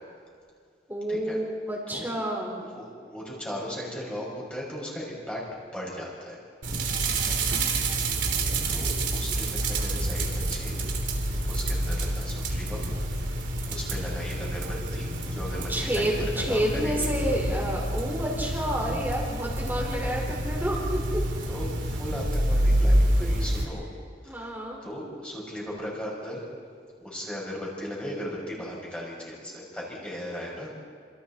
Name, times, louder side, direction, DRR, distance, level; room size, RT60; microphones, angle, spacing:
voice 1, 0.9-2.6 15.7-21.0 23.2-23.7 24.2-24.8, equal, 10° right, -2 dB, 4.9 m, -29 dB
voice 2, 2.6-5.4 5.7-6.4 7.1-7.4 8.0-8.1 8.7-10.8 11.5-12.9 13.7-14.7 14.9-17.1 19.7-20.2 21.5-23.8 24.2-24.5 24.8-26.4 27.0-30.7, equal, 5° left, -4 dB, 6.4 m, -37 dB
sound 1, 6.6-23.6, right 1 dB, 80° right, 3.3 m, -28 dB
28.5 x 27.0 x 4.4 m, 2.2 s
head